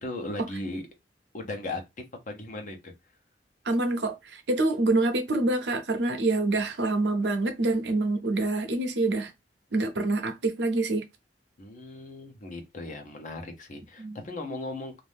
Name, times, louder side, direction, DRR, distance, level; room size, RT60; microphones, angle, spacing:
voice 1, 0.0-0.8 1.3-1.8 2.3-2.9 11.6-14.9, left 2 dB, 45° left, 0.9 m, -37 dB
voice 2, 3.6-9.3 9.7-11.0 14.0-14.2, right 2 dB, 75° right, 0.8 m, -26 dB
2.7 x 2.6 x 3.5 m
head